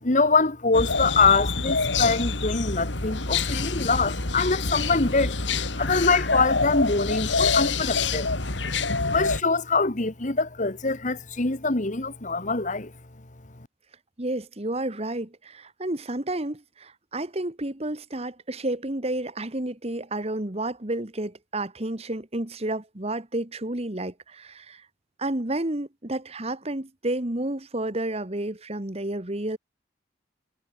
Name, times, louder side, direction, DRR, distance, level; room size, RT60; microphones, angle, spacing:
voice 1, 0.0-8.3 8.9-12.9, left 3 dB, 40° left, 1.6 m, -24 dB
sound 1, 0.7-9.4, left 4 dB, 75° left, 3.1 m, -26 dB
voice 2, 14.2-24.8 25.2-29.6, right 1 dB, 35° right, 1.7 m, -31 dB
head